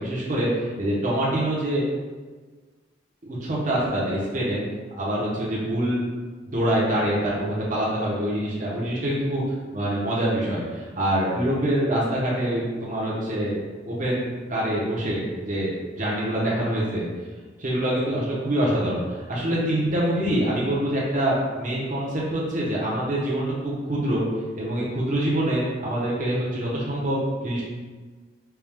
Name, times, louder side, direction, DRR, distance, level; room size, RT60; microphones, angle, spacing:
voice 1, 0.0-1.8 3.2-4.6 5.0-6.1 6.5-13.5 13.8-15.7 16.0-17.1 17.6-24.2 24.6-27.6, right 1 dB, 45° right, -6 dB, 0.9 m, -25 dB
4.6 x 2.3 x 3.5 m, 1.4 s
head